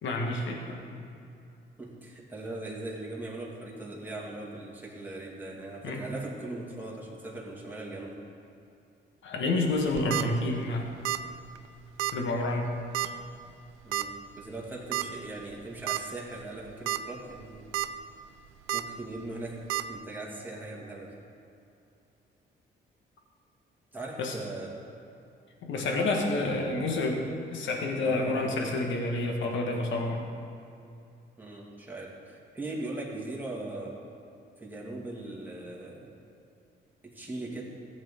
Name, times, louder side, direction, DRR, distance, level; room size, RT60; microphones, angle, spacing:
voice 1, 0.0-0.8 5.8-6.1 9.2-10.9 12.1-12.7 24.2-24.3 25.7-27.2 27.5-30.3, left 2 dB, 75° left, 2 dB, 1.5 m, -29 dB
voice 2, 1.8-8.2 13.8-17.7 18.7-21.1 23.9-24.8 28.0-28.4 31.4-34.0 34.6-36.1 37.0-37.6, right 2 dB, 10° right, -4 dB, 2.2 m, -39 dB
sound 1, 9.8-10.2 11.0-11.3 11.6-11.7 12.0-12.1 12.9-13.2 13.9-14.0 14.9-15.1 15.5-15.6 15.9-16.0 16.7-17.0 17.4-17.9 18.7-18.8 19.7-19.8, right 14 dB, 85° right, 0.4 m, -29 dB
14.5 x 8.2 x 3.7 m, 2.6 s
cardioid pair, 90°, 20 cm